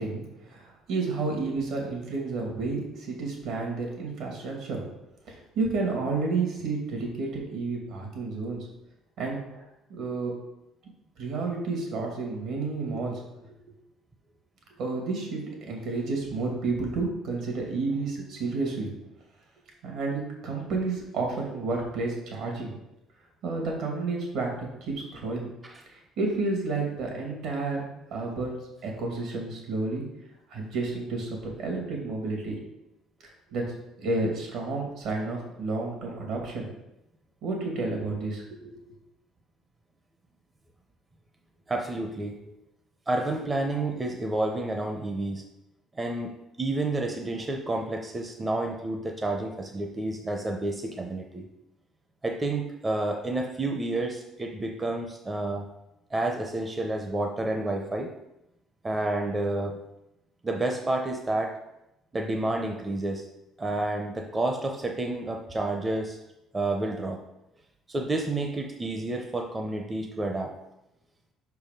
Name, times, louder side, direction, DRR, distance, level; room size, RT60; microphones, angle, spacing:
voice 1, 0.0-4.8 5.3-8.7 9.2-10.3 11.2-13.5 14.8-18.9 19.8-22.7 23.4-25.5 25.9-28.6 28.8-30.0 30.5-31.3 31.6-32.6 33.2-33.7 34.0-36.7 37.4-38.9, right 3 dB, 70° right, 0 dB, 2.2 m, -31 dB
voice 2, 41.7-42.4 43.1-45.4 46.0-51.5 52.2-55.7 56.1-58.1 58.8-59.8 60.4-61.6 62.1-63.3 63.6-66.2 66.5-67.2 67.9-70.5, right 2 dB, 20° right, 3 dB, 0.6 m, -30 dB
5.6 x 4.7 x 5.2 m, 0.90 s
cardioid pair, 140°, 0 cm